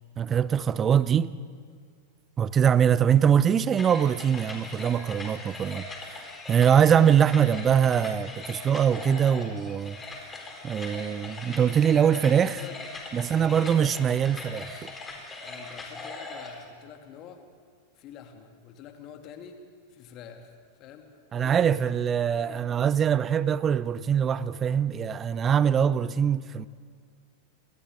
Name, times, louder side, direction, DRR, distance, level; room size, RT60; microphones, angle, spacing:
voice 1, 0.2-1.3 2.4-6.2 6.5-10.0 10.6-12.6 13.1-14.9 21.3-26.7, right 8 dB, 25° right, 0.7 m, -23 dB
sound 1, 3.8-16.6, left 3 dB, 15° left, 4.3 m, -40 dB
voice 2, 11.9-12.9 13.2-14.0 15.4-17.4 18.0-19.6 19.9-22.9, left 7 dB, 35° left, 2.6 m, -46 dB
30.0 x 24.5 x 3.8 m
figure-of-eight pair, 90°, 0 cm